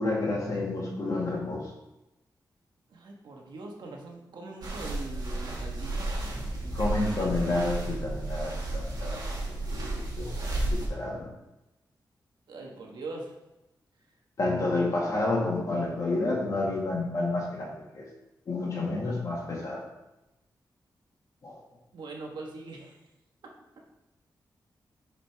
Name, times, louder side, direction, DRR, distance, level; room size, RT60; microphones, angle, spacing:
voice 1, 0.0-1.7 6.7-9.2 9.7-11.3 14.4-18.1 18.5-19.8 21.4-21.6, left 2 dB, 50° left, -2 dB, 1.8 m, -30 dB
voice 2, 2.9-6.1 12.5-13.3 21.9-23.0 23.4-23.5, right 3 dB, 85° right, -1 dB, 1.3 m, -42 dB
sound 1, 4.6-10.9, right 2 dB, 60° right, 2.0 m, -32 dB
10.5 x 5.0 x 3.5 m, 0.96 s
wide cardioid pair, 155°, 7 cm